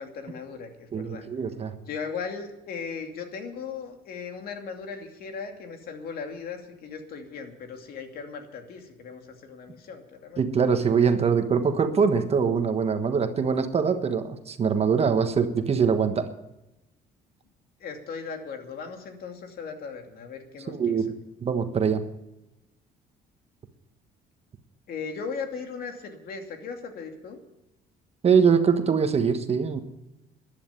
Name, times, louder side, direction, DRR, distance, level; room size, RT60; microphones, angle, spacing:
voice 1, 0.0-1.3 1.9-10.4 17.8-21.0 24.9-27.4, left 5 dB, 65° left, 4 dB, 2.6 m, -37 dB
voice 2, 0.9-1.7 10.4-16.3 20.7-21.1 21.4-22.0 28.2-29.8, right 6 dB, 40° right, 8 dB, 1.4 m, -23 dB
13.0 x 10.5 x 9.0 m, 0.93 s
cardioid pair, 110°, 17 cm